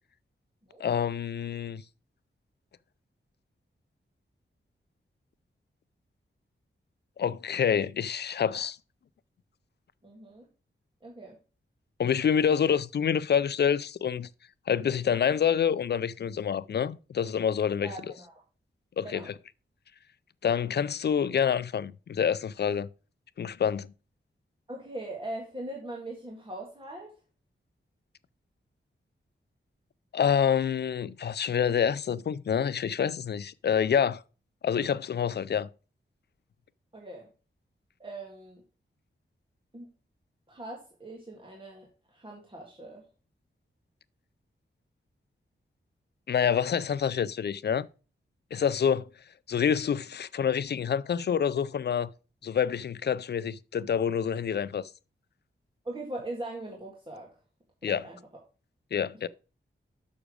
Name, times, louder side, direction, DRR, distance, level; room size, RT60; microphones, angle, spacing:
voice 1, 0.8-1.8 7.2-8.8 12.0-14.3 14.7-17.9 19.0-19.2 20.4-22.9 23.4-23.9 30.1-34.2 34.6-35.7 46.3-47.9 48.5-49.1 49.5-52.1 52.4-54.9 57.8-58.0 58.9-59.3, left 8 dB, 55° left, 0.4 m, -27 dB
voice 2, 10.0-10.4 11.0-11.4 17.8-18.3 19.0-19.3 24.7-27.1 36.9-37.3 38.0-38.6 39.7-39.9 40.5-43.0 55.8-57.3 57.8-58.2, right 1 dB, 25° right, 1.8 m, -40 dB
6.7 x 6.1 x 5.0 m
wide cardioid pair, 115°, 21 cm